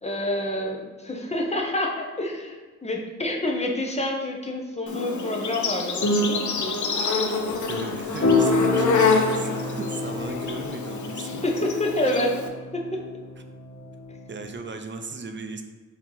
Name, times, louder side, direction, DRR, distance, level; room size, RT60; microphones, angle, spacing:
voice 1, 0.0-6.7 11.4-12.3 12.7-12.8, left 1 dB, 20° left, 0 dB, 0.8 m, -28 dB
Insect, 4.9-12.5, left 4 dB, 70° left, 0.5 m, -27 dB
sound 1, 4.9-14.5, left 2 dB, 50° left, 1.1 m, -29 dB
voice 2, 7.7-11.4 14.3-15.6, right 3 dB, 40° right, 6 dB, 0.5 m, -37 dB
4.4 x 2.9 x 3.8 m, 1.4 s
cardioid pair, 75°, 30 cm